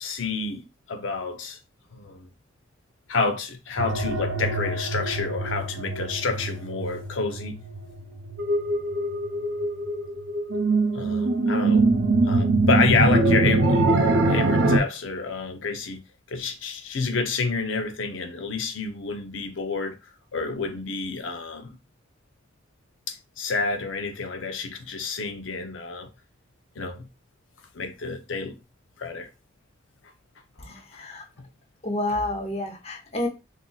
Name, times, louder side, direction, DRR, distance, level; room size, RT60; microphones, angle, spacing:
voice 1, 0.0-1.6 1.9-2.3 3.1-7.6 10.9-11.9 12.2-13.9 14.3-16.0 16.3-20.0 20.3-21.8 23.1-26.1 26.8-27.1 27.7-28.6 29.0-29.3 30.9-31.0 31.4-31.5, left 4 dB, 90° left, 0.7 m, -29 dB
sound 1, 3.8-14.8, right 2 dB, 70° right, 0.6 m, -23 dB
voice 2, 30.6-31.3 31.8-33.3, left 1 dB, 35° left, 0.8 m, -29 dB
3.8 x 2.7 x 2.3 m
head